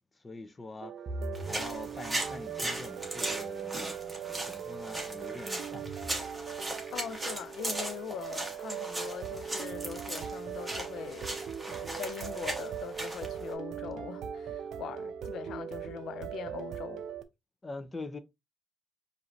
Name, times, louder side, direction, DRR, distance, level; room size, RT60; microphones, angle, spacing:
voice 1, 0.2-0.9 1.4-4.0 4.4-5.9 17.6-18.2, left 2 dB, 25° left, 0.7 m, -44 dB
sound 1, 0.8-17.2, right 8 dB, 75° right, 0.5 m, -40 dB
sound 2, 1.1-7.0, right 1 dB, 50° right, 0.9 m, -46 dB
sound 3, 1.4-13.5, right 1 dB, 10° right, 1.4 m, -38 dB
voice 2, 6.9-11.3 11.6-17.1, left 9 dB, 75° left, 0.4 m, -42 dB
4.8 x 2.7 x 2.7 m
cardioid pair, 90°, 0 cm